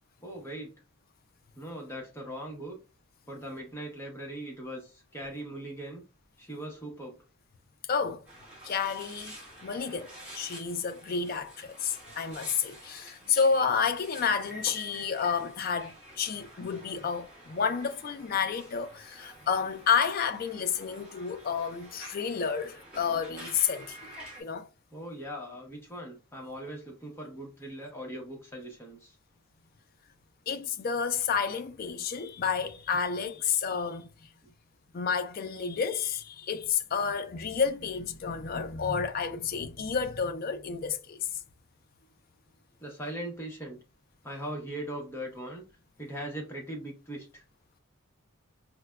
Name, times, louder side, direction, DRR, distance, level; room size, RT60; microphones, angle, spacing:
voice 1, 0.2-0.7 1.5-2.8 3.3-6.0 6.4-7.2 19.4-19.5 24.9-29.2 42.8-43.8 44.2-45.6 46.0-47.4, right 1 dB, 10° left, 0.8 m, -40 dB
voice 2, 7.9-8.2 8.6-9.3 9.6-24.7 30.5-34.1 34.9-41.4, left 6 dB, 45° left, 0.3 m, -30 dB
sound 1, 8.3-24.4, right 1 dB, 5° right, 1.3 m, -49 dB
4.8 x 2.1 x 2.2 m
head